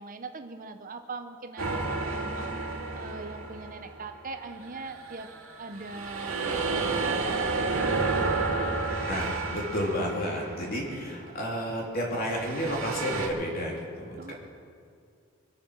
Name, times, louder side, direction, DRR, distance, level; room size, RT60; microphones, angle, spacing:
voice 1, 0.0-2.5 2.9-5.3 5.6-8.4 14.2-14.3, right 3 dB, 40° right, 7 dB, 0.8 m, -41 dB
sound 1, 1.6-4.1 4.6-11.1 12.2-13.3, right 3 dB, 75° right, 2.3 m, -31 dB
voice 2, 9.1-14.3, equal, 45° left, -2 dB, 3.4 m, -31 dB
24.0 x 8.5 x 6.6 m, 2.3 s
head